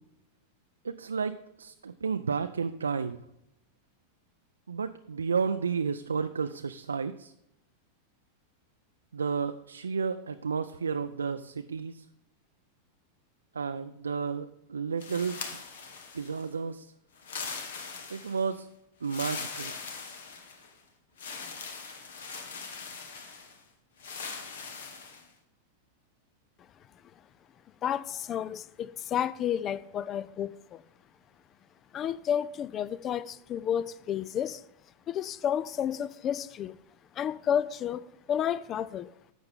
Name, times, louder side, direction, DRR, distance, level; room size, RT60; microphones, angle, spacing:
voice 1, 0.8-3.2 4.7-7.3 9.1-12.1 13.5-15.4 16.1-16.9 18.1-18.7 19.0-19.7, right 5 dB, 75° right, 0.3 m, -32 dB
sound 1, 15.0-16.5 17.2-18.5 19.0-20.7 21.2-23.6 24.0-25.3, left 5 dB, 60° left, 1.3 m, -41 dB
voice 2, 27.8-30.8 31.9-34.6 35.1-36.7 37.2-39.1, left 9 dB, 30° left, 0.3 m, -31 dB
11.0 x 7.7 x 3.6 m
figure-of-eight pair, 90°, 0 cm